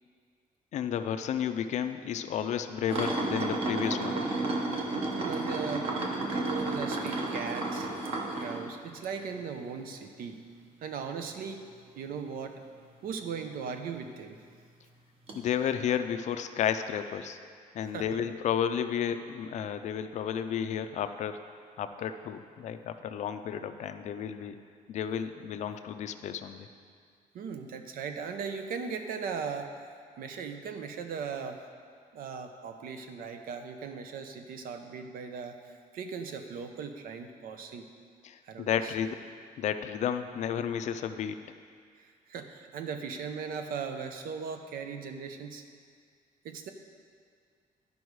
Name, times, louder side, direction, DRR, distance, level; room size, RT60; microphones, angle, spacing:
voice 1, 0.7-4.2 15.3-17.4 17.7-21.4 21.8-24.6 24.9-26.7 38.2-39.2 39.6-41.4, left 8 dB, 55° left, 9 dB, 0.4 m, -32 dB
sound 1, 2.9-9.4 9.8-10.0 13.5-13.6 15.3-15.4, right 2 dB, 40° right, 1.0 m, -32 dB
voice 2, 4.7-5.9 6.3-7.9 8.3-10.4 10.8-11.6 12.0-12.6 13.0-14.4 17.8-18.2 27.3-29.7 30.2-31.6 32.1-37.9 38.4-38.9 42.0-45.6 46.4-46.7, right 6 dB, 80° right, 6 dB, 0.7 m, -38 dB
11.5 x 5.3 x 4.7 m, 2.1 s
cardioid pair, 180°, 15 cm